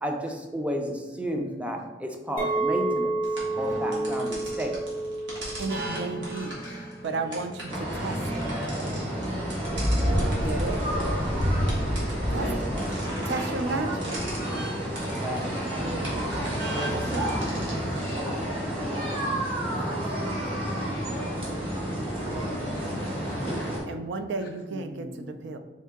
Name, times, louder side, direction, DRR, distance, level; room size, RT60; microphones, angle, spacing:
voice 1, 0.0-3.2 3.6-4.8 10.0-10.4 12.6-13.0 15.1-16.7 24.7-25.4, equal, 10° right, 3 dB, 0.4 m, -33 dB
Chink clink, 2.4-6.7 7.0-7.5, right 2 dB, 55° right, 1.1 m, -30 dB
sound 1, 3.2-18.2, right 1 dB, 85° right, 1.3 m, -38 dB
voice 2, 5.6-6.7 7.0-8.5 10.3-10.8 12.3-12.7 13.2-14.1 16.9-17.3 23.9-25.6, right 3 dB, 70° right, 8 dB, 0.4 m, -33 dB
voice 3, 6.6-6.9 10.9-11.2 15.2-15.3 19.9-20.4 20.7-21.4 22.8-23.7, left 4 dB, 70° left, 1 dB, 0.3 m, -46 dB
sound 2, 7.7-23.8, equal, 30° right, 1.0 m, -29 dB
3.7 x 2.7 x 3.5 m, 1.2 s
head